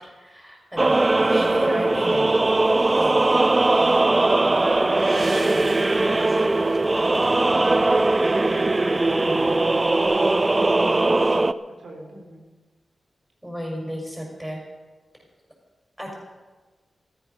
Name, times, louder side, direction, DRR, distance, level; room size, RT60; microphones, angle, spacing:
voice 1, 0.2-2.4 2.9-3.3 5.3-5.8 13.4-14.6 16.0-16.1, equal, 10° right, -1 dB, 5.7 m, -33 dB
sound 1, 0.8-11.5, right 2 dB, 25° right, 0.5 m, -20 dB
sound 2, 4.7-8.9 10.0-10.1, right 2 dB, 60° right, 4.7 m, -45 dB
voice 2, 7.2-9.6 10.2-12.4, right 1 dB, 80° right, 0 dB, 3.4 m, -40 dB
15.5 x 14.0 x 5.6 m, 1.3 s
wide cardioid pair, 90°, 0 cm